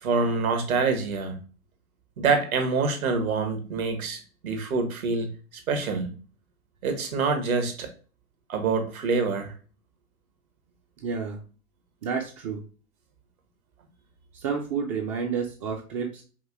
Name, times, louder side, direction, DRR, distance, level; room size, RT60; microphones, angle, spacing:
voice 1, 0.0-1.4 2.2-5.3 5.7-6.1 6.8-7.9 8.5-9.5, right 4 dB, 70° right, 6 dB, 1.3 m, -26 dB
voice 2, 11.0-11.4 12.0-12.6 14.3-16.2, right 6 dB, 25° right, 2 dB, 0.4 m, -30 dB
5.4 x 2.7 x 2.4 m, 0.37 s
hypercardioid pair, 115°, 43 cm